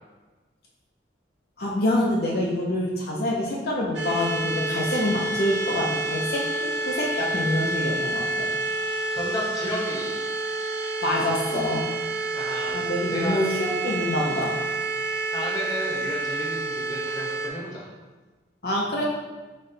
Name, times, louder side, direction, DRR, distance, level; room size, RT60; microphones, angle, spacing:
voice 1, 1.6-8.5 11.0-11.8 12.7-14.6 18.6-19.0, left 1 dB, 55° left, -3 dB, 0.6 m, -26 dB
sound 1, 3.9-17.5, right 2 dB, 70° right, 0.6 m, -29 dB
voice 2, 9.1-10.1 12.3-12.8 13.1-13.4 15.3-17.9, equal, 20° left, -4 dB, 0.9 m, -32 dB
4.2 x 3.1 x 3.8 m, 1.3 s
head